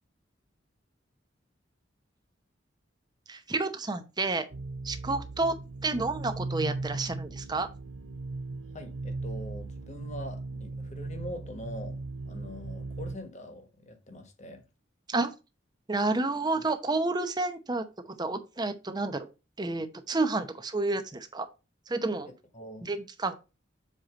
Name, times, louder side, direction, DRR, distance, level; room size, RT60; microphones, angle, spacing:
voice 1, 3.3-4.4 4.8-5.5 5.8-7.7 15.1-15.3 15.9-17.8 18.2-19.3 19.6-21.5 21.9-22.3 22.8-23.3, right 3 dB, 20° right, 0.8 m, -30 dB
sound 1, 4.5-13.2, right 3 dB, 80° right, 0.6 m, -38 dB
voice 2, 8.7-12.0 12.2-14.6 22.2-22.9, left 1 dB, 40° left, 1.4 m, -43 dB
7.6 x 3.0 x 5.1 m
head